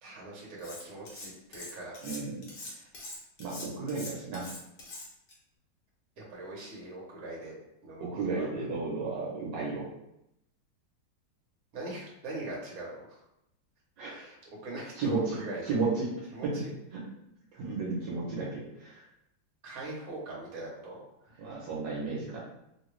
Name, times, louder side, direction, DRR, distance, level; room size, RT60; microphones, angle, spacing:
voice 1, 0.0-1.9 2.6-2.9 6.2-7.6 7.8-8.5 11.7-13.2 14.0-14.4 14.6-15.6 16.3-16.7 19.6-21.4, right 2 dB, 55° right, -4 dB, 1.3 m, -42 dB
Cutlery silverware, 0.6-1.3 1.5-5.3, left 2 dB, 65° left, 1.3 m, -43 dB
voice 2, 2.0-2.4 3.4-4.5 8.0-9.9 14.0-14.1 15.0-17.0 17.5-19.0 21.4-22.4, right 3 dB, 75° right, -4 dB, 1.4 m, -33 dB
3.2 x 2.4 x 3.0 m, 0.81 s
omnidirectional pair, 2.0 m